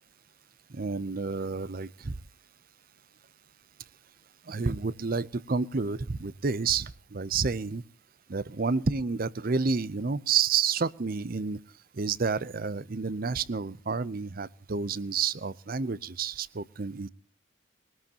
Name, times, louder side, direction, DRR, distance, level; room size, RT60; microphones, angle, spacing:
voice 1, 0.7-2.1 4.5-7.8 8.3-11.6 12.0-17.1, right 5 dB, 45° right, 19 dB, 0.6 m, -30 dB
22.5 x 18.5 x 2.9 m, 0.41 s
head